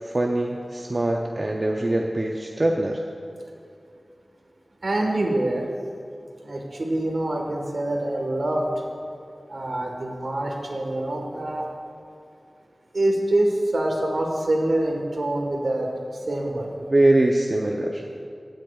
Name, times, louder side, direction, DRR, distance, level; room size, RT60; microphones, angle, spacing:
voice 1, 0.0-3.0 16.9-18.0, right 1 dB, 45° right, 1 dB, 0.6 m, -22 dB
voice 2, 4.8-5.6 6.4-8.7 9.5-11.7 12.9-15.9 16.3-16.7, right 1 dB, 70° right, 1 dB, 1.4 m, -25 dB
16.0 x 8.8 x 2.4 m, 2.4 s
wide cardioid pair, 45°, 0 cm